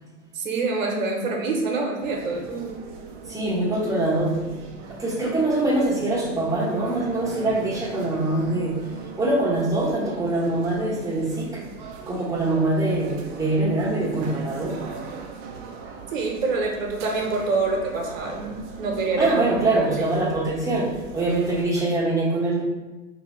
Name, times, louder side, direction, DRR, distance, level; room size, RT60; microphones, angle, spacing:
voice 1, 0.3-2.8 16.1-18.5 18.8-19.4 19.7-20.1, right 3 dB, 75° right, 0 dB, 1.0 m, -26 dB
sound 1, 2.0-21.6, right 5 dB, 45° right, 0.6 m, -40 dB
voice 2, 3.3-4.4 5.0-8.9 9.2-11.6 12.1-14.8 19.2-22.6, right 2 dB, 10° right, -5 dB, 1.0 m, -24 dB
3.0 x 2.7 x 4.2 m, 1.2 s
hypercardioid pair, 100°, 39 cm